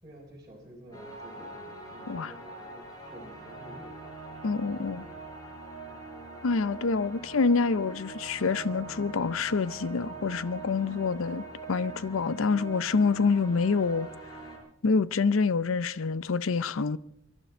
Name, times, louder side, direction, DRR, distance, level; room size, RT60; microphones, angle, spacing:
voice 1, 0.0-4.0 4.9-5.1, equal, 20° right, 4.0 m, -50 dB
sound 1, 0.9-14.6, right 3 dB, 20° left, 4.2 m, -43 dB
voice 2, 4.4-5.1 6.4-14.1 14.8-17.0, left 4 dB, 85° left, 0.6 m, -27 dB
24.0 x 12.0 x 4.4 m
head